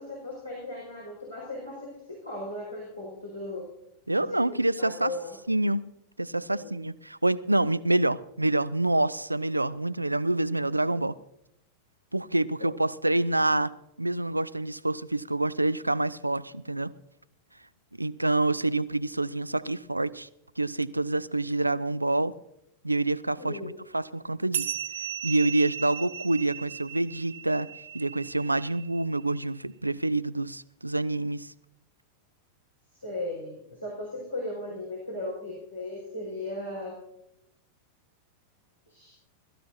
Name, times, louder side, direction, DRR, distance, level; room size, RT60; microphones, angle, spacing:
voice 1, 0.0-3.7 4.2-5.4 6.5-6.8 12.6-12.7 23.4-23.8 32.9-37.0 38.9-39.1, left 2 dB, 85° left, 5.3 m, -37 dB
voice 2, 4.1-5.1 5.5-5.8 6.2-11.2 12.1-13.7 14.0-16.9 18.0-20.3 20.6-22.3 22.8-24.8 25.2-27.7 27.9-31.5, right 2 dB, 85° right, 0.4 m, -27 dB
sound 1, 24.5-29.4, right 9 dB, 60° right, 1.2 m, -37 dB
21.5 x 14.0 x 2.8 m
figure-of-eight pair, 90°, 0 cm